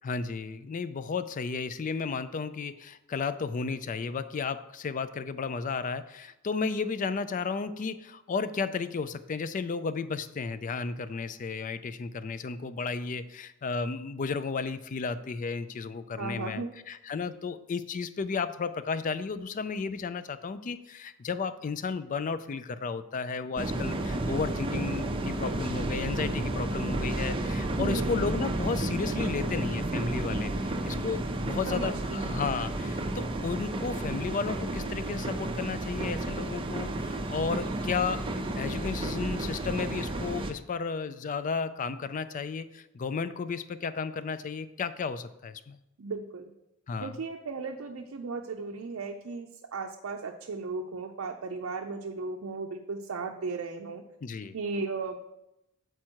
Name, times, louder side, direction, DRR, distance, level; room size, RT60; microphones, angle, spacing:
voice 1, 0.0-38.3 38.6-45.8 46.9-47.1 54.2-54.6, left 5 dB, 40° left, 13 dB, 0.3 m, -33 dB
voice 2, 16.1-16.7 27.8-28.2 31.7-32.3 46.0-46.5 47.0-54.0 54.5-55.2, right 4 dB, 75° right, 2 dB, 0.5 m, -36 dB
sound 1, 23.6-40.5, right 1 dB, 25° right, 0.5 m, -32 dB
7.6 x 4.6 x 4.5 m, 0.89 s
head